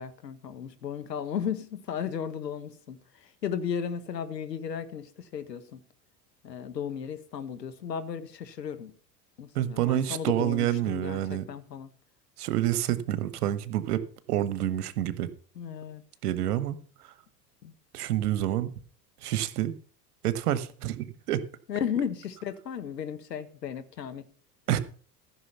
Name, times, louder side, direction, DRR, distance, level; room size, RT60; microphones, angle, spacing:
voice 1, 0.0-5.8 6.4-8.9 9.4-11.9 15.6-16.0 17.6-17.7 21.7-24.3, left 8 dB, 80° left, 1.2 m, -35 dB
voice 2, 9.5-11.4 12.4-14.0 14.3-15.3 16.2-16.8 17.9-18.7 19.2-19.7 20.2-21.4 24.7-24.8, right 12 dB, 65° right, 1.2 m, -28 dB
14.5 x 6.3 x 5.6 m
figure-of-eight pair, 75°, 49 cm